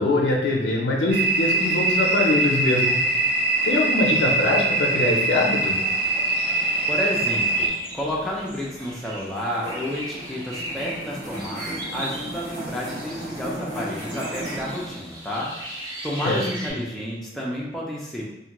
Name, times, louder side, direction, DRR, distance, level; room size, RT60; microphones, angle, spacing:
voice 1, 0.0-3.0 3.6-5.8 16.2-16.4, left 2 dB, 80° left, -1 dB, 0.5 m, -22 dB
sound 1, 1.1-7.7, right 2 dB, 65° right, 0.6 m, -22 dB
sound 2, 5.5-15.0, right 1 dB, 45° right, 1.2 m, -37 dB
sound 3, 5.6-16.7, equal, 25° right, 1.0 m, -38 dB
voice 2, 6.9-18.3, equal, ahead, -5 dB, 0.4 m, -31 dB
2.5 x 2.3 x 2.9 m, 0.96 s
head